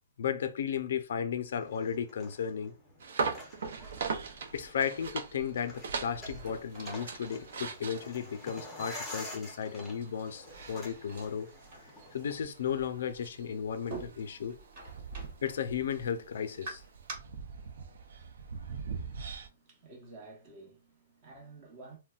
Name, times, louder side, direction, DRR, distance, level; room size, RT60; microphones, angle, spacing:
voice 1, 0.2-2.7 4.5-11.5 12.1-14.6 15.4-16.8, left 7 dB, 65° left, 0.4 m, -34 dB
sound 1, 1.6-12.4, left 2 dB, 5° left, 0.7 m, -49 dB
sound 2, 3.0-19.5, right 5 dB, 70° right, 0.5 m, -41 dB
sound 3, 5.7-17.1, right 3 dB, 40° right, 1.4 m, -50 dB
voice 2, 19.2-22.0, right 3 dB, 25° right, 1.0 m, -52 dB
3.8 x 2.1 x 2.3 m
hypercardioid pair, 170°, 0 cm